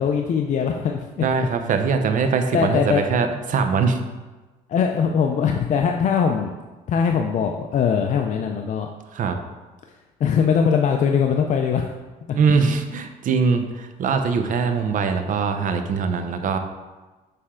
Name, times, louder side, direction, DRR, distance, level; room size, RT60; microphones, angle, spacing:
voice 1, 0.0-1.3 2.5-3.0 4.7-6.5 6.9-8.9 10.2-11.9, left 7 dB, 45° left, 3 dB, 0.5 m, -21 dB
voice 2, 1.2-4.0 9.1-9.4 12.3-16.6, right 5 dB, 50° right, 7 dB, 0.7 m, -22 dB
6.7 x 4.3 x 3.7 m, 1.2 s
cardioid pair, 110°, 17 cm